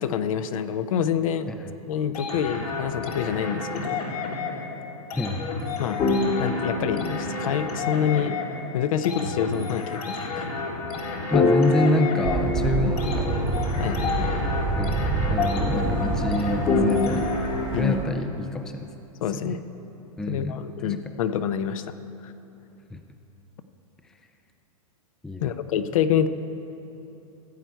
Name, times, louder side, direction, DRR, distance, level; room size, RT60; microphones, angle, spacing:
voice 1, 0.0-1.5 1.9-4.0 5.8-6.0 6.4-8.4 8.7-10.5 12.8-12.9 13.8-14.3 17.7-18.0 19.2-19.6 20.3-22.0 22.2-22.3 25.4-26.3, left 8 dB, 65° left, 11 dB, 0.6 m, -27 dB
sound 1, 2.1-17.9, left 3 dB, 85° left, 2.0 m, -32 dB
voice 2, 5.1-5.8 11.3-13.4 14.7-17.4 17.7-18.9 19.3-19.6 20.2-21.0 22.9-23.0 25.2-25.5, left 1 dB, 5° left, 7 dB, 0.4 m, -28 dB
sound 2, 6.0-8.2 11.3-13.6 14.0-18.3, left 3 dB, 30° left, 1.1 m, -27 dB
sound 3, 12.2-18.0, right 3 dB, 25° right, 1.1 m, -27 dB
15.0 x 7.9 x 4.5 m, 3.0 s
hypercardioid pair, 120°, 19 cm